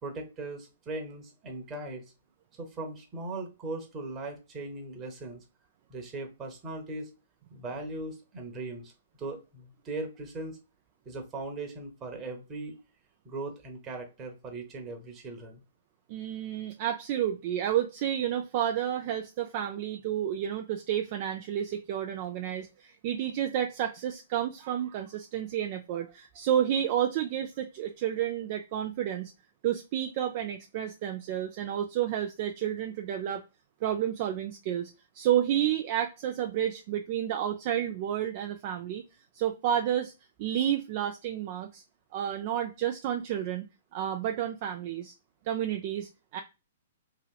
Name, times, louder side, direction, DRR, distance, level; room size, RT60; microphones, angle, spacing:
voice 1, 0.0-2.0 2.5-5.4 5.9-7.1 7.5-8.9 9.2-10.6 11.0-12.8 13.2-15.6, right 2 dB, 25° right, 3 dB, 1.0 m, -39 dB
voice 2, 16.1-29.3 29.6-33.4 33.8-39.0 39.3-40.1 40.4-41.8 42.1-43.7 43.9-45.1 45.4-46.4, right 10 dB, 45° right, 5 dB, 0.3 m, -30 dB
3.0 x 2.9 x 2.3 m, 0.29 s
hypercardioid pair, 125°, 0 cm